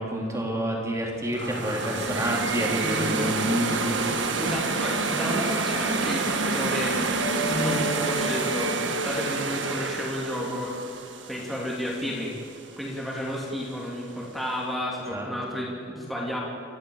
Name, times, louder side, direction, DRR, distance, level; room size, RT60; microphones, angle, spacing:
voice 1, 0.0-4.0 15.1-15.3, equal, 15° right, -1 dB, 3.5 m, -28 dB
sound 1, 1.3-12.3, right 3 dB, 60° right, 1.6 m, -28 dB
voice 2, 2.8-3.4 4.3-7.0 7.5-10.8 11.3-12.3 12.8-16.4, equal, ahead, -5 dB, 3.0 m, -31 dB
sound 2, 7.2-11.1, right 1 dB, 85° left, 3.7 m, -34 dB
30.0 x 14.0 x 7.3 m, 2.5 s
head